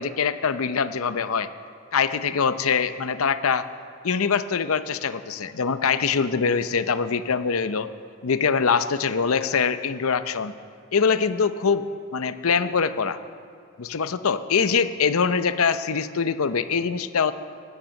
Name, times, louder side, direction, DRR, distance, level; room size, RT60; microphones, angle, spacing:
voice 1, 0.0-1.5 1.9-3.7 4.0-7.9 8.2-10.5 10.9-11.9 12.1-13.2 13.8-17.3, left 6 dB, 80° left, 12 dB, 0.6 m, -23 dB
16.0 x 10.5 x 6.4 m, 2.5 s
head